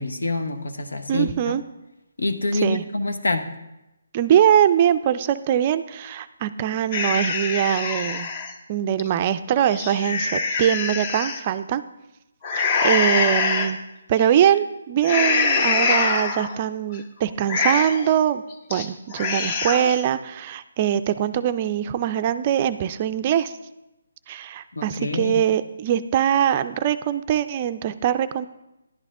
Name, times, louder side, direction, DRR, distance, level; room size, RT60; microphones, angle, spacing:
voice 1, 0.0-1.3 2.2-3.5 24.8-25.4, left 2 dB, 85° left, 7 dB, 1.0 m, -26 dB
voice 2, 1.1-1.6 2.6-2.8 4.1-8.3 8.7-11.8 12.5-13.8 14.1-18.4 18.7-23.5 24.3-28.5, right 10 dB, 30° right, 11 dB, 0.4 m, -22 dB
sound 1, 6.9-8.5 9.0-9.1 9.6-11.4 12.4-13.7 14.2-14.5 15.0-16.6 16.9-17.0 17.4-18.1 18.5-18.9 19.1-20.0, left 4 dB, 35° left, 0.8 m, -24 dB
11.0 x 9.1 x 3.7 m, 0.93 s
hypercardioid pair, 155°, 0 cm